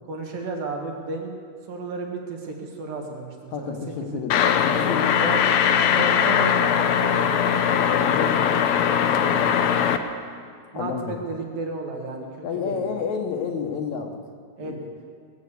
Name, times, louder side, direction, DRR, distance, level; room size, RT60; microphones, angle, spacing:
voice 1, 0.1-1.4 1.7-3.8 4.0-4.2 5.2-5.4 5.9-7.5 9.1-9.6 10.7-12.8 14.6-14.9, right 3 dB, 85° right, 0 dB, 3.7 m, -33 dB
voice 2, 3.5-5.3 7.8-8.6 10.7-11.2 12.4-14.2 14.6-14.8, left 6 dB, 65° left, 3 dB, 2.2 m, -30 dB
sound 1, 4.3-10.0, left 8 dB, 85° left, 1.5 m, -20 dB
20.0 x 7.3 x 8.3 m, 2.2 s
omnidirectional pair, 4.0 m